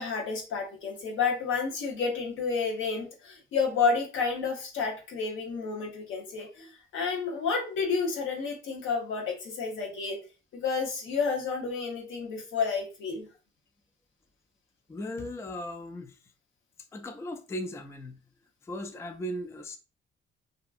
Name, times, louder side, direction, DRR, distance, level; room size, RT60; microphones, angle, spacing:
voice 1, 0.0-10.2 10.5-13.3, left 5 dB, 80° left, 0.9 m, -30 dB
voice 2, 14.9-16.2 16.9-18.2 18.6-19.8, left 1 dB, 15° left, 0.3 m, -37 dB
2.7 x 2.3 x 2.4 m
cardioid pair, 90°, 20 cm